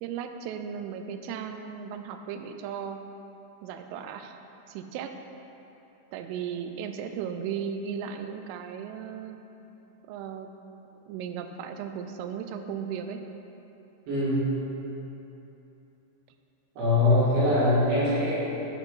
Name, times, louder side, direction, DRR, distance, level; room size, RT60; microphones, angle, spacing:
voice 1, 0.0-3.0 3.6-4.4 4.7-5.1 6.1-9.4 10.1-10.5 11.1-13.2, right 7 dB, 85° right, 7 dB, 3.1 m, -36 dB
voice 2, 14.1-14.4 16.8-18.3, left 2 dB, 60° right, -10 dB, 3.7 m, -22 dB
10.5 x 5.9 x 3.9 m, 3.0 s
omnidirectional pair, 5.7 m